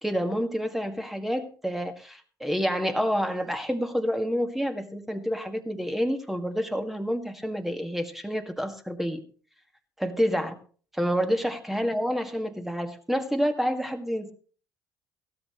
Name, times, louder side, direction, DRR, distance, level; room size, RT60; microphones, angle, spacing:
voice 1, 0.0-9.2 10.0-10.6 10.9-14.3, equal, 5° right, 1.7 m, -28 dB
16.0 x 13.0 x 3.0 m
hypercardioid pair, 55°, 9 cm